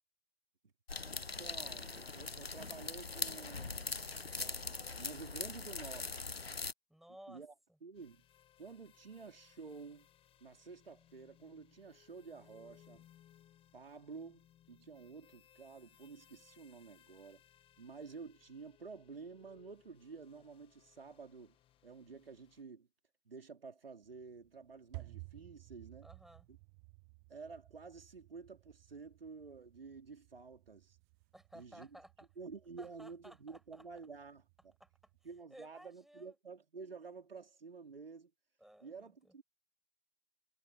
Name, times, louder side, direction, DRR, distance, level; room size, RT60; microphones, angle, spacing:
sound 1, 0.9-6.7, left 4 dB, 85° left, 0.9 m, -41 dB
voice 1, 1.1-3.9 4.4-6.2 7.3-7.5 7.8-8.2 8.6-10.1 10.4-13.1 13.7-17.4 17.8-21.6 21.8-22.9 23.3-26.1 26.5-26.6 27.3-31.0 31.5-31.9 32.4-34.7 35.2-38.3 38.8-39.4, right 4 dB, 70° right, 3.9 m, -51 dB
voice 2, 6.9-7.4 26.0-26.5 31.3-32.3 32.8-33.8 34.8-34.9 35.5-36.3 38.6-39.3, right 1 dB, ahead, 6.4 m, -56 dB
sound 2, 7.9-22.6, left 11 dB, 20° left, 1.8 m, -66 dB
sound 3, 24.0-35.4, right 33 dB, 25° right, 0.7 m, -57 dB
figure-of-eight pair, 115°, 29 cm